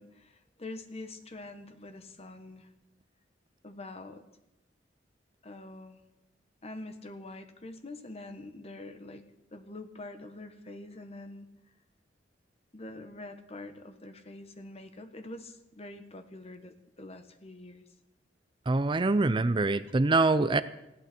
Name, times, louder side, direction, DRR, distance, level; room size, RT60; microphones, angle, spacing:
voice 1, 0.0-2.7 3.6-4.2 5.4-6.0 6.6-9.2 9.5-11.5 12.7-17.8, left 2 dB, 35° left, 7 dB, 1.3 m, -45 dB
voice 2, 18.7-20.6, right 3 dB, 30° right, 13 dB, 0.5 m, -24 dB
19.5 x 15.0 x 4.5 m, 0.94 s
head